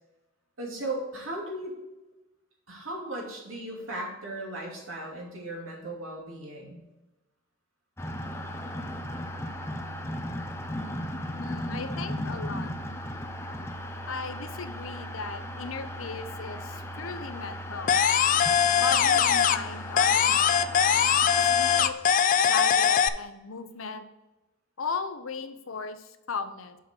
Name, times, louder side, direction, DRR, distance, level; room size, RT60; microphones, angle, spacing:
voice 1, 0.6-1.8 2.7-6.8, right 1 dB, 85° right, -2 dB, 2.7 m, -36 dB
sound 1, 8.0-21.9, equal, 15° left, 0.7 m, -36 dB
voice 2, 11.4-12.7 14.1-18.0 18.8-20.9 21.4-22.0 22.4-24.1 24.8-26.8, left 5 dB, 80° left, 10 dB, 0.7 m, -36 dB
sound 2, 17.9-19.7 20.0-23.1, left 8 dB, 40° left, 0.3 m, -21 dB
7.1 x 6.1 x 4.5 m, 1.1 s
head